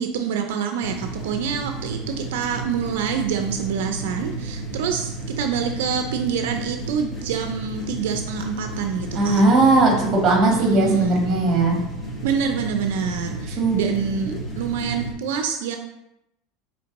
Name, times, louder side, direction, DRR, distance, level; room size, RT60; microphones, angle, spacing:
voice 1, 0.0-9.4 10.5-11.2 12.2-15.8, right 6 dB, 80° right, 5 dB, 0.4 m, -26 dB
sound 1, 0.8-15.1, right 2 dB, 20° left, 0.9 m, -32 dB
voice 2, 9.1-11.7 13.6-13.9 14.3-14.4, right 2 dB, 30° right, -1 dB, 1.4 m, -18 dB
5.2 x 3.2 x 2.9 m, 0.86 s
supercardioid pair, 145°, 0 cm